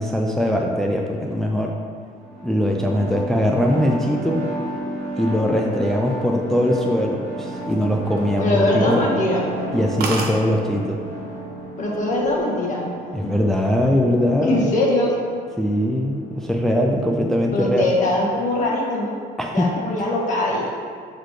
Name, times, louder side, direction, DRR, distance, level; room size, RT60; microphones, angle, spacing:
voice 1, 0.0-1.7 2.4-4.4 5.2-9.0 9.7-11.0 13.1-14.6 15.6-17.8 19.4-19.7, equal, ahead, 0 dB, 0.4 m, -21 dB
sound 1, 2.2-17.6, right 1 dB, 45° right, 1.4 m, -33 dB
sound 2, 7.5-8.5 8.9-9.1 9.5-9.6 9.7-9.8 10.0-10.4 11.3-11.6 11.9-12.4, right 4 dB, 65° right, 0.9 m, -29 dB
voice 2, 8.4-9.4 11.8-12.9 13.2-13.3 14.4-15.1 17.5-19.2 19.5-20.7, left 1 dB, 45° left, -3 dB, 1.4 m, -21 dB
7.8 x 4.1 x 3.2 m, 2.1 s
cardioid pair, 110°, 17 cm